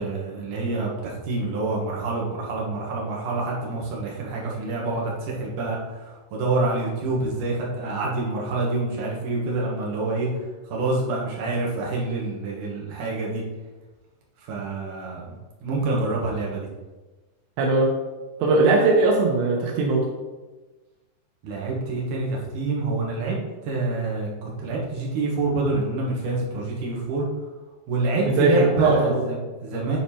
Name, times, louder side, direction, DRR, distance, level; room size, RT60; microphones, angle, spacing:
voice 1, 0.0-10.3 10.7-13.4 14.5-15.3 15.6-16.7 21.4-23.4 23.6-27.3 27.9-30.0, right 3 dB, 60° right, -3 dB, 2.6 m, -27 dB
voice 2, 17.6-17.9 18.4-20.0 28.1-29.3, right 3 dB, 90° right, -1 dB, 3.2 m, -20 dB
9.0 x 4.4 x 4.3 m, 1.2 s
omnidirectional pair, 4.8 m